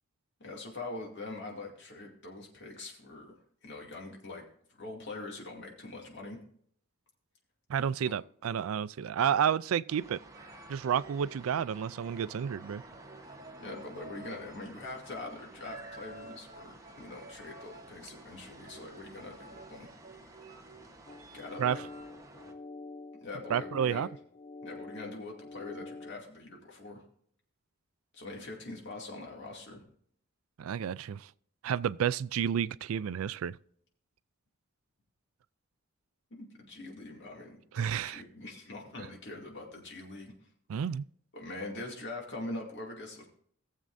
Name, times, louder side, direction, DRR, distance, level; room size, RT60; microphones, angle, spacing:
voice 1, 0.4-3.3 3.6-4.4 4.8-6.4 8.0-8.2 13.6-19.9 21.3-21.8 23.2-24.1 24.6-27.0 28.1-29.8 36.4-40.5 41.3-43.3, left 2 dB, 60° left, 2.4 m, -43 dB
voice 2, 7.7-10.2 10.7-12.8 21.6-21.8 23.5-24.1 30.6-31.3 31.6-33.6 37.8-38.2 40.7-41.1, right 8 dB, 90° right, 0.4 m, -30 dB
sound 1, 9.9-22.5, right 2 dB, 15° right, 1.1 m, -53 dB
sound 2, 10.3-22.1, right 2 dB, 40° right, 1.8 m, -53 dB
sound 3, 21.1-26.1, left 3 dB, 35° left, 0.4 m, -46 dB
18.5 x 7.4 x 2.6 m
head